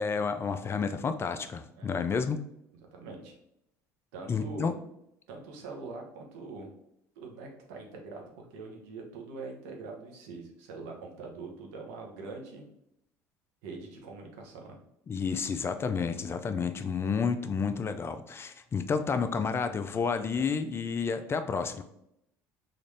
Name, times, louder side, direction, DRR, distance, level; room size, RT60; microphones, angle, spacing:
voice 1, 0.0-2.4 4.3-4.7 15.1-21.8, left 5 dB, 30° left, 9 dB, 0.4 m, -30 dB
voice 2, 2.9-3.3 4.1-4.7 5.3-6.7 7.2-12.6 13.6-14.8, right 3 dB, 80° right, 1 dB, 0.9 m, -43 dB
3.8 x 2.5 x 3.3 m, 0.78 s
hypercardioid pair, 75°, 8 cm